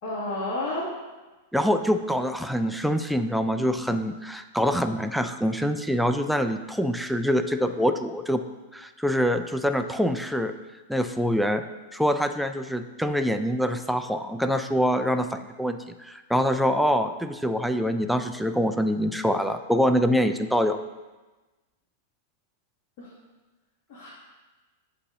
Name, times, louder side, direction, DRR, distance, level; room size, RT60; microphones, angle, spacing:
voice 1, 0.0-0.9 23.0-23.1 23.9-24.1, left 2 dB, 50° left, -9 dB, 1.9 m, -30 dB
voice 2, 1.5-8.4 8.7-10.5 10.9-11.6 11.9-20.8, equal, ahead, 7 dB, 0.3 m, -25 dB
8.5 x 2.8 x 4.9 m, 1.2 s
hypercardioid pair, 130°, 0 cm